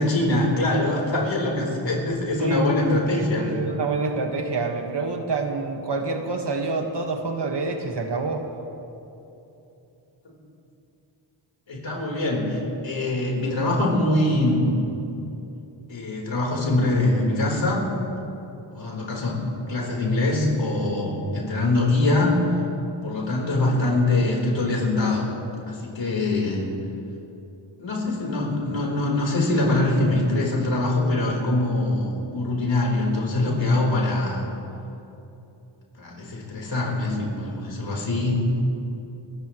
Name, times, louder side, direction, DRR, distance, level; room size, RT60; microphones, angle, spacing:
voice 1, 0.0-3.5 11.7-14.8 15.9-17.9 18.7-22.6 23.0-25.3 25.7-26.7 27.8-34.4 36.0-38.4, left 2 dB, 70° left, -2 dB, 4.1 m, -23 dB
voice 2, 2.4-8.4, right 3 dB, 60° right, 3 dB, 1.7 m, -27 dB
27.5 x 15.5 x 3.2 m, 2.9 s
wide cardioid pair, 80°, 47 cm